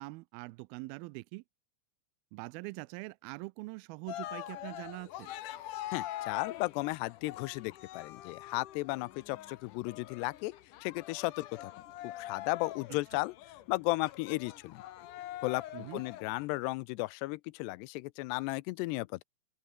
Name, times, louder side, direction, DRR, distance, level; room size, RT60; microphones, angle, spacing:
voice 1, 0.0-1.4 2.3-5.3 15.7-16.0, right 24 dB, 85° right, 2.2 m, -43 dB
Cheering, 4.1-16.5, left 13 dB, 65° left, 2.2 m, -44 dB
voice 2, 5.9-10.5 10.8-11.7 12.0-13.3 13.7-14.8 15.4-19.2, left 22 dB, 90° left, 2.7 m, -35 dB
open air
omnidirectional pair, 4.8 m